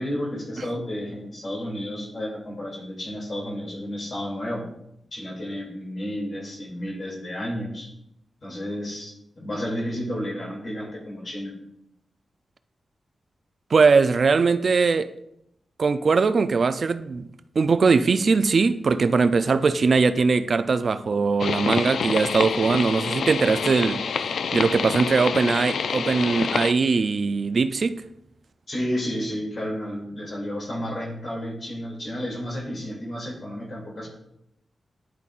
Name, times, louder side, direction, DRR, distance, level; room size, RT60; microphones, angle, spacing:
voice 1, 0.0-4.7 5.1-7.9 8.4-11.6 28.7-34.1, equal, 45° left, 2.5 m, -31 dB
voice 2, 13.7-15.1 15.8-17.3 17.6-24.0 24.5-28.0, right 4 dB, 55° right, 0.3 m, -21 dB
sound 1, 21.4-26.7, left 6 dB, 85° left, 0.3 m, -27 dB
10.5 x 5.4 x 2.4 m
wide cardioid pair, 100°, 0 cm